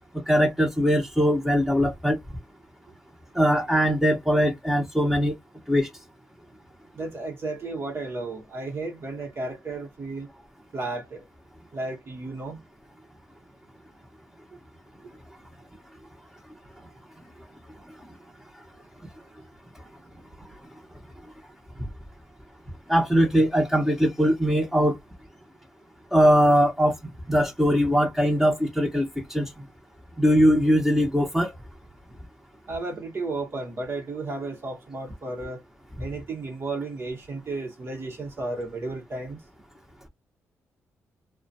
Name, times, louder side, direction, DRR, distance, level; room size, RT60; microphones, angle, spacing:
voice 1, 0.3-2.2 3.3-5.3 5.7-5.9 22.9-25.0 26.1-26.9 27.3-29.5 30.2-31.5, equal, 5° right, 0.9 m, -21 dB
voice 2, 7.0-10.3 10.7-11.2 11.7-12.6 32.7-35.6 36.0-39.4, right 2 dB, 45° right, 1.1 m, -33 dB
2.3 x 2.2 x 2.7 m
cardioid pair, 70°, 6 cm